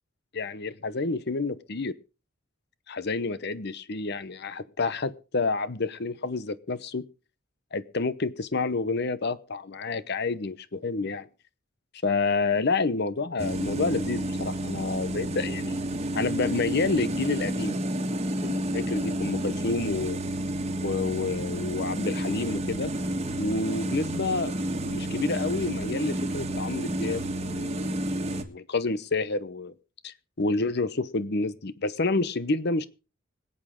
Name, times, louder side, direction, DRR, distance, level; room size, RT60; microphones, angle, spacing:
voice 1, 0.3-2.0 2.9-7.0 7.7-11.3 12.0-15.8 16.1-17.8 18.4-20.2 20.8-22.9 23.4-24.5 24.9-29.7 30.0-32.9, left 3 dB, 55° left, 0.9 m, -29 dB
sound 1, 13.4-28.4, right 1 dB, 30° right, 1.5 m, -30 dB
25.5 x 8.7 x 3.7 m
head